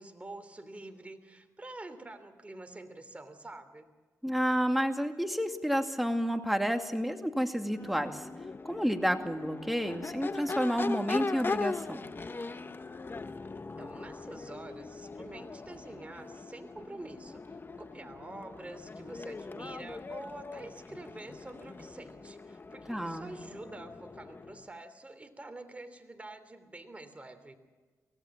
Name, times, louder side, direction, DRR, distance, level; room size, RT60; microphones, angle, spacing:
voice 1, 0.0-3.9 13.8-17.4 17.8-27.6, right 2 dB, 20° right, 8 dB, 3.1 m, -47 dB
voice 2, 4.2-8.3 8.6-12.1 22.9-23.3, equal, ahead, 5 dB, 2.3 m, -30 dB
Crowd / Race car auto racing / Accelerating revving vroom, 7.6-24.7, left 3 dB, 35° left, 1.1 m, -40 dB
24.5 x 17.0 x 7.3 m, 1.4 s
cardioid pair, 65°, 6 cm